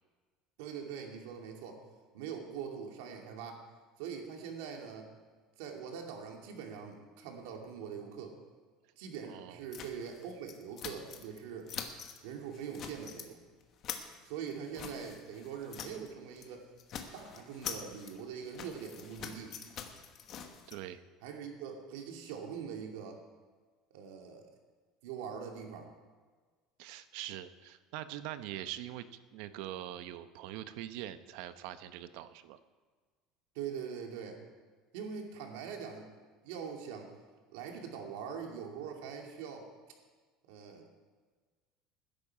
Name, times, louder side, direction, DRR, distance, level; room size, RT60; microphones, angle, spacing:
voice 1, 0.6-1.8 2.1-3.6 4.0-5.1 5.6-8.4 9.0-11.7 12.2-13.4 14.2-16.7 17.1-19.6 21.2-23.2 23.9-24.5 25.0-25.9 33.5-34.4 34.9-36.1 36.4-37.1 37.5-39.7 40.5-41.1, right 7 dB, 85° right, 2 dB, 2.5 m, -43 dB
voice 2, 9.3-9.6 20.7-21.0 26.8-32.6, right 12 dB, 65° right, 12 dB, 0.7 m, -43 dB
sound 1, 9.7-11.4 11.7-12.2 12.5-13.3 13.6-16.1 16.4-16.5 16.8-20.7, left 7 dB, 35° left, 1.2 m, -45 dB
19.5 x 10.5 x 4.8 m, 1.4 s
cardioid pair, 170°, 0 cm